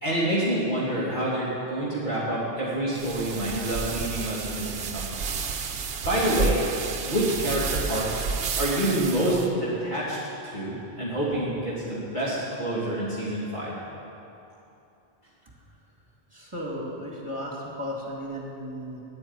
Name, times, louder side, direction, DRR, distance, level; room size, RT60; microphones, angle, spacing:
voice 1, 0.0-5.0 6.0-6.6 7.1-8.1 8.6-10.2 10.4-13.7, right 1 dB, 45° left, -10 dB, 2.9 m, -27 dB
sound 1, 3.0-9.5, right 5 dB, 60° right, 1.0 m, -31 dB
voice 2, 16.3-19.0, equal, 25° right, -3 dB, 2.4 m, -35 dB
9.8 x 9.7 x 9.8 m, 2.8 s
omnidirectional pair, 1.1 m